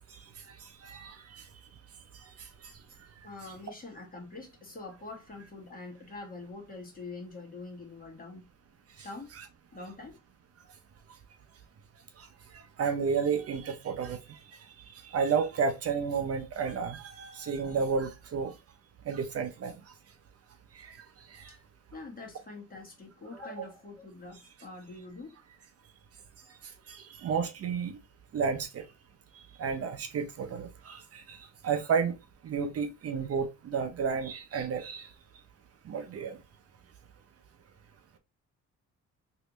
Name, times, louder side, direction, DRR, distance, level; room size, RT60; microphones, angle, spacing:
voice 1, 0.6-1.4 2.6-2.7 12.2-12.3 12.5-14.4 14.9-18.5 19.1-19.7 20.7-21.0 21.3-21.5 23.6-23.7 26.9-27.9 28.3-28.8 29.3-31.4 31.6-32.2 32.4-35.1 35.9-36.4, right 5 dB, 50° right, 0.7 m, -32 dB
voice 2, 3.2-8.5 9.0-9.3 9.7-10.2 21.5-21.6 21.9-25.4, left 3 dB, 30° left, 1.6 m, -44 dB
3.2 x 2.8 x 3.0 m
cardioid pair, 90°, 30 cm